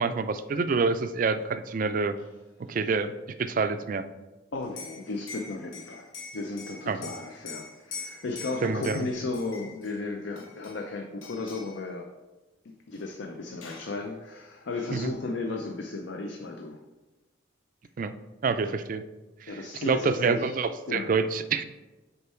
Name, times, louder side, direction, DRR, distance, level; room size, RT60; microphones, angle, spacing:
voice 1, 0.0-2.1 2.7-3.1 3.4-4.1 6.9-7.1 8.6-9.1 14.9-15.1 18.0-18.1 18.4-19.0 19.4-19.5 19.8-21.6, right 4 dB, 40° right, 11 dB, 0.3 m, -27 dB
voice 2, 4.5-12.1 12.6-16.8 19.5-21.3, left 3 dB, 60° left, 4 dB, 0.5 m, -35 dB
Liquid, 4.6-9.9 10.4-10.9 11.2-11.8 13.0-13.1 13.3-13.9, left 4 dB, 85° left, 1.0 m, -43 dB
6.7 x 4.4 x 4.3 m, 1.1 s
head